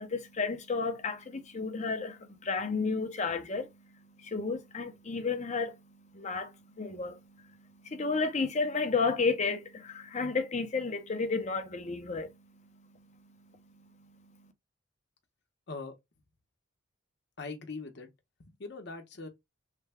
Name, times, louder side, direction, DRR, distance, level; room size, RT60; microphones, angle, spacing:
voice 1, 0.0-12.9 13.2-13.3 13.7-14.5, left 4 dB, 35° left, 0.6 m, -33 dB
voice 2, 17.4-18.1 18.4-19.3, left 3 dB, 60° left, 0.9 m, -41 dB
3.3 x 2.2 x 3.4 m
head